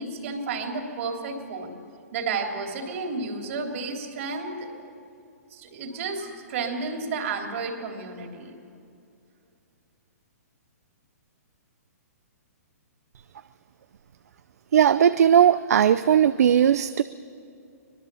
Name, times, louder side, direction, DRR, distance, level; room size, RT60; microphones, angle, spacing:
voice 1, 0.0-1.7 2.1-4.7 5.5-8.6, right 4 dB, 55° right, 2 dB, 3.6 m, -32 dB
voice 2, 14.7-17.0, right 9 dB, 70° right, 13 dB, 0.6 m, -18 dB
24.5 x 19.5 x 7.1 m, 2.6 s
hypercardioid pair, 145°, 9 cm